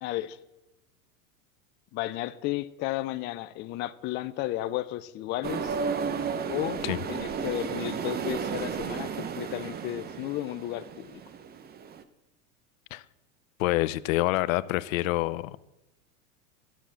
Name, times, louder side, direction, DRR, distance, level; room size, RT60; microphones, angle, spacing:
voice 1, 0.0-0.4 1.9-5.8 6.5-6.8 7.1-11.1, left 15 dB, 30° left, 13 dB, 0.4 m, -33 dB
sound 1, 5.4-12.0, right 6 dB, 25° right, 0.7 m, -33 dB
voice 2, 13.6-15.6, left 17 dB, 70° left, 17 dB, 0.6 m, -27 dB
12.0 x 7.0 x 7.4 m, 0.96 s
supercardioid pair, 120°, 42 cm